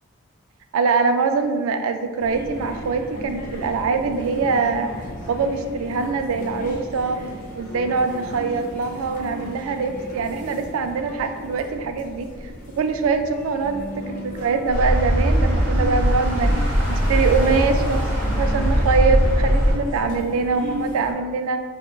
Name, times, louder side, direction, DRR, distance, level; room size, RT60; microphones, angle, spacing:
voice 1, 0.7-4.9 5.3-7.2 7.6-12.3 12.8-21.6, right 4 dB, 85° right, 8 dB, 0.3 m, -23 dB
sound 1, 2.2-21.1, equal, 40° left, 0.5 m, -35 dB
sound 2, 14.7-19.7, equal, 15° right, 1.1 m, -20 dB
5.8 x 2.1 x 2.3 m, 1.5 s
head